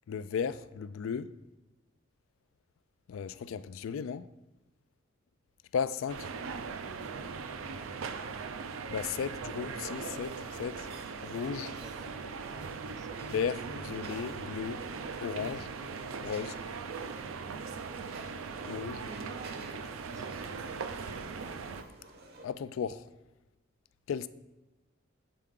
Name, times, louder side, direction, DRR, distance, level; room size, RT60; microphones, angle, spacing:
voice 1, 0.1-1.3 3.1-4.3 5.7-6.3 8.9-10.9 11.2-11.7 13.3-14.8 15.2-15.7 16.2-16.5 18.7-19.0 22.4-23.1 24.1-24.3, left 7 dB, 80° left, 0.3 m, -35 dB
sound 1, 6.1-21.8, right 5 dB, 90° right, 0.5 m, -40 dB
sound 2, 9.5-22.5, right 2 dB, 50° right, 0.8 m, -53 dB
voice 2, 12.4-13.2 18.6-19.4 20.1-20.4, right 2 dB, 15° right, 0.3 m, -54 dB
7.8 x 4.6 x 3.6 m
head